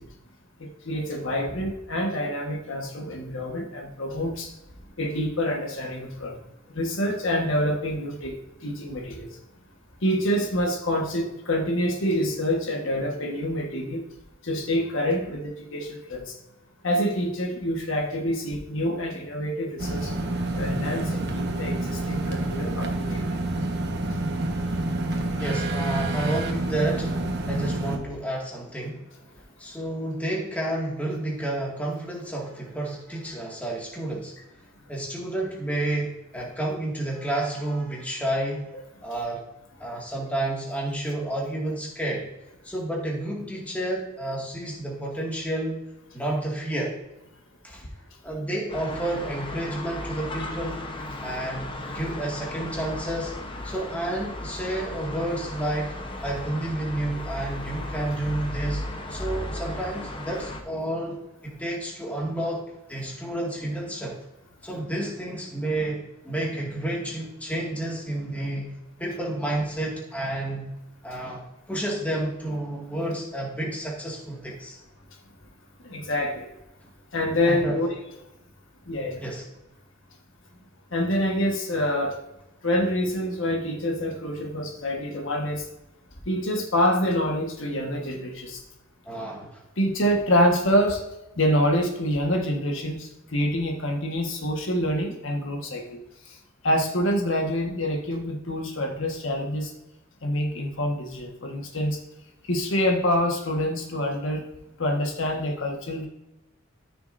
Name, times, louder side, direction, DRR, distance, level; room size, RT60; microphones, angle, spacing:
voice 1, 0.6-4.5 5.0-6.4 6.7-8.3 8.6-9.3 10.0-14.0 14.4-16.4 16.8-20.1 20.6-23.2 75.8-76.5 77.1-77.9 78.9-79.2 80.9-82.2 82.6-85.7 86.3-88.6 89.8-91.0 91.4-96.0 96.3-96.4 96.6-99.7 100.2-102.0 102.5-104.4 104.8-106.1, equal, 65° left, 1 dB, 1.5 m, -26 dB
sound 1, 19.8-28.0, right 1 dB, 50° right, 1.3 m, -28 dB
voice 2, 25.4-27.2 27.4-29.1 29.6-34.3 34.9-38.7 39.0-39.4 39.8-42.3 42.6-45.8 46.1-47.0 47.6-47.9 48.2-50.9 51.2-53.3 53.6-58.8 59.1-64.2 64.6-68.7 69.0-70.7 71.0-74.8 77.5-77.8 79.2-79.5 89.1-89.6, right 1 dB, 5° left, -2 dB, 2.1 m, -30 dB
sound 2, 48.7-60.6, left 1 dB, 25° left, 0.9 m, -35 dB
13.5 x 6.7 x 2.6 m, 0.96 s
head